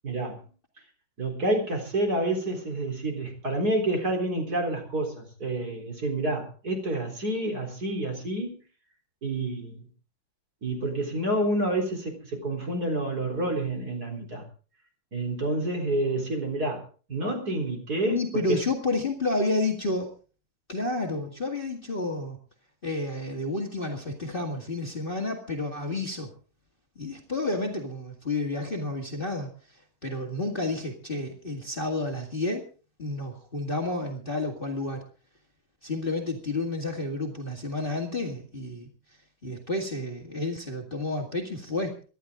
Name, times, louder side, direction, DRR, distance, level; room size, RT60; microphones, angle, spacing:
voice 1, 0.0-0.4 1.2-8.5 9.2-9.8 10.6-14.4 15.1-16.8 17.1-18.6, right 1 dB, 45° right, 3 dB, 4.5 m, -28 dB
voice 2, 18.1-20.1 20.7-22.4 22.8-26.3 27.0-29.5 30.0-32.6 33.0-35.0 35.8-38.9 39.4-41.9, left 2 dB, 25° left, 2 dB, 2.2 m, -30 dB
24.5 x 12.0 x 3.8 m, 0.38 s
omnidirectional pair, 2.3 m